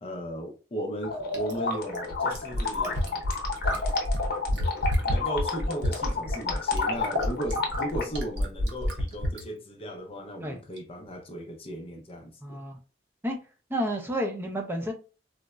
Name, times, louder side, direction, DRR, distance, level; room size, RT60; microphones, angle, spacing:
voice 1, 0.0-3.0 5.1-12.6, equal, 30° left, 0.6 m, -36 dB
sound 1, 1.0-8.0, left 4 dB, 60° left, 0.8 m, -30 dB
Fill (with liquid), 1.3-9.4 10.8-10.9, left 1 dB, 70° right, 0.8 m, -29 dB
voice 2, 12.4-12.8 13.2-13.4 13.7-14.9, equal, 15° right, 0.6 m, -30 dB
3.9 x 2.1 x 2.3 m
head